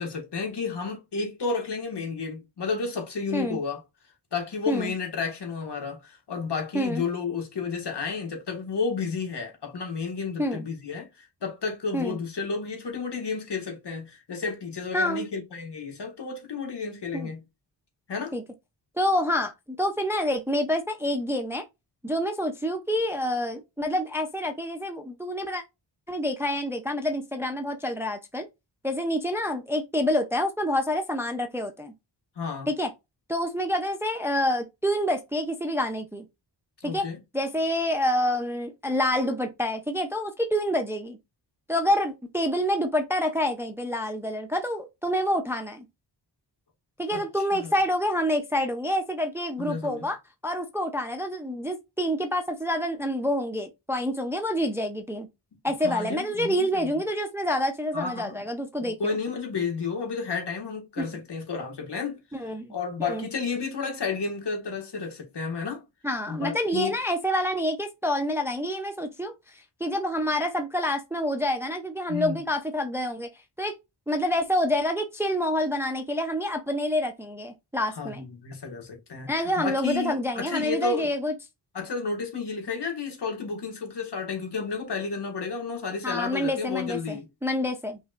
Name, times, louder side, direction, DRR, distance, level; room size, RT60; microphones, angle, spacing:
voice 1, 0.0-3.8 4.3-17.4 18.1-18.3 32.4-32.7 36.8-37.2 47.1-47.2 47.5-47.7 49.6-50.1 55.8-57.0 57.9-58.4 58.8-62.2 62.7-65.8 66.3-67.0 72.1-72.4 78.0-81.1 81.7-87.3, left 5 dB, 60° left, 1.8 m, -32 dB
voice 2, 14.9-15.3 17.1-17.3 18.3-18.4 19.0-21.6 22.0-25.6 26.1-28.5 28.8-31.9 32.7-32.9 33.3-36.3 36.8-37.1 37.3-41.2 41.7-45.8 47.0-50.2 50.4-55.3 55.6-59.2 61.0-61.1 62.3-62.7 63.0-63.3 66.0-73.3 73.6-73.7 74.1-78.2 79.3-81.3 86.0-88.0, equal, 5° right, 0.5 m, -27 dB
5.5 x 3.1 x 2.5 m
wide cardioid pair, 140°, 45 cm